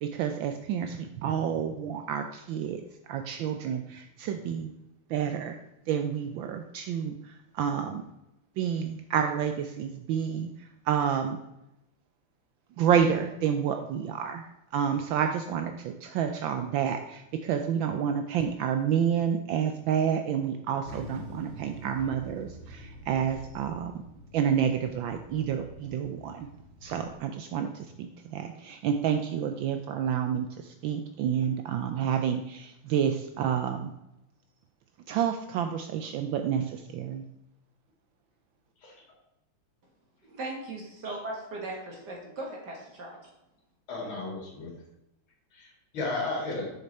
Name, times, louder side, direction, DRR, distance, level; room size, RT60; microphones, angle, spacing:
voice 1, 0.0-4.7 5.1-5.6 5.9-8.0 8.6-11.4 12.8-14.4 14.7-23.9 24.3-26.5 26.8-33.9 35.1-37.2, right 8 dB, 75° right, 7 dB, 1.2 m, -29 dB
sound 1, 20.8-27.1, equal, 35° left, 0.8 m, -47 dB
voice 2, 40.2-43.3, right 2 dB, 50° right, -1 dB, 2.1 m, -38 dB
voice 3, 43.9-44.7 45.9-46.7, left 2 dB, 65° left, -1 dB, 2.8 m, -33 dB
6.7 x 6.6 x 4.1 m, 0.90 s
omnidirectional pair, 2.4 m